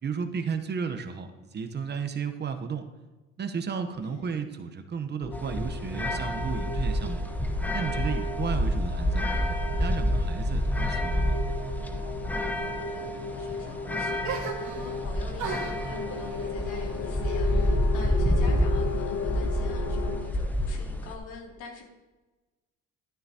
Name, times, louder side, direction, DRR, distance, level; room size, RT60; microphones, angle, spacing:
voice 1, 0.0-2.9 3.4-7.2 7.7-9.3 9.8-11.3, right 6 dB, 35° right, 7 dB, 0.9 m, -33 dB
voice 2, 4.0-4.3 8.0-8.6 12.4-21.8, left 3 dB, 85° left, 0 dB, 2.6 m, -45 dB
sound 1, 5.2-20.2, left 5 dB, 60° left, 1.5 m, -37 dB
sound 2, 5.3-21.2, equal, 5° left, 0.9 m, -28 dB
sound 3, 14.2-15.0 15.4-18.1 18.4-19.3, right 6 dB, 65° right, 1.6 m, -39 dB
12.0 x 9.6 x 2.8 m, 1.2 s
cardioid pair, 115°, 31 cm